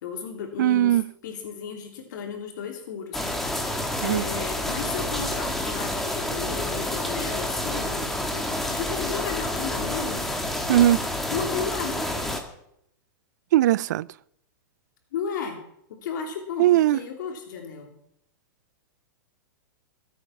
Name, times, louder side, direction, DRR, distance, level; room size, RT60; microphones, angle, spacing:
voice 1, 0.0-3.2 4.0-10.2 11.3-12.1 15.1-15.6 15.9-17.9, left 6 dB, 60° left, 3.3 m, -34 dB
voice 2, 0.6-1.1 4.0-4.2 10.7-11.0 13.5-14.1 16.6-17.0, right 13 dB, 60° right, 0.4 m, -19 dB
sound 1, 3.1-12.4, left 1 dB, ahead, 1.7 m, -29 dB
20.5 x 8.6 x 5.9 m
supercardioid pair, 155°, 11 cm